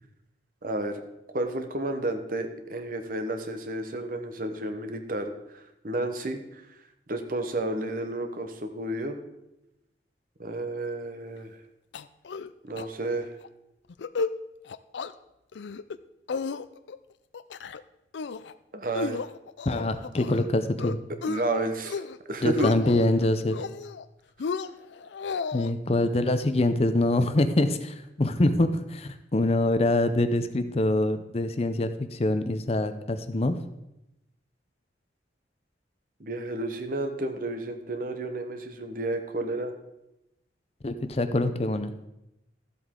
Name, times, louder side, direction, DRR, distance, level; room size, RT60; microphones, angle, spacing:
voice 1, 0.6-1.0 1.3-5.3 5.8-6.6 7.1-9.1 10.4-11.5 12.6-13.3 18.7-19.2 21.3-22.0 22.3-22.9 36.2-39.7, right 2 dB, 50° right, 6 dB, 1.0 m, -31 dB
sound 1, 11.9-12.5 12.8-12.9 13.2-13.5 13.9-14.3 14.7-15.1 15.5-16.0 16.3-17.0 17.3-17.8 18.1-18.5 18.9-20.5 20.8-21.4 21.8-22.2 22.4-23.1 23.5-24.0 24.4-25.7, left 5 dB, 80° left, 0.4 m, -33 dB
voice 2, 19.7-21.0 22.4-23.6 25.5-33.6 40.8-41.9, left 2 dB, 35° left, 9 dB, 0.6 m, -25 dB
13.5 x 8.0 x 3.7 m, 0.90 s
head